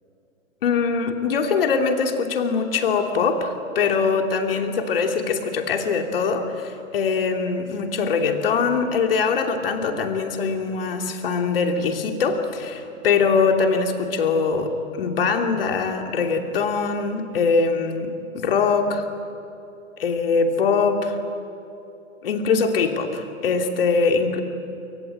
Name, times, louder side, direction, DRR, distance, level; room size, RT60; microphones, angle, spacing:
voice 1, 0.6-19.0 20.0-21.2 22.2-24.4, left 5 dB, 45° left, 5 dB, 2.8 m, -22 dB
27.0 x 24.5 x 8.9 m, 2.9 s
figure-of-eight pair, 125°, 41 cm